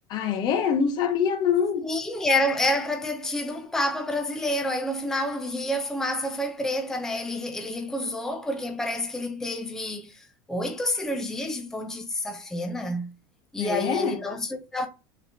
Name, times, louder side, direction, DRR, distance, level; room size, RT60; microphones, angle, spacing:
voice 1, 0.1-1.9 13.6-14.2, left 7 dB, 45° left, 0.8 m, -25 dB
voice 2, 1.8-13.1 13.5-14.9, left 1 dB, 5° left, 0.5 m, -28 dB
4.1 x 2.9 x 3.4 m
supercardioid pair, 135°, 10 cm